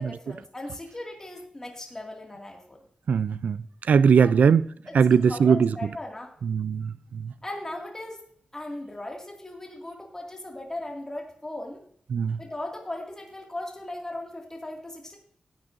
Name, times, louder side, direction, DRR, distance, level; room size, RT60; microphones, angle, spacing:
voice 1, 0.0-2.8 4.2-4.3 4.9-6.3 7.4-8.2 8.5-11.8 12.4-15.2, left 1 dB, 20° left, 2.1 m, -38 dB
voice 2, 3.1-3.6 3.9-4.7 4.9-5.7 6.4-6.9 7.2-7.3 12.1-12.4, right 6 dB, 85° right, 0.3 m, -20 dB
15.0 x 8.9 x 2.6 m
wide cardioid pair, 75°, 3 cm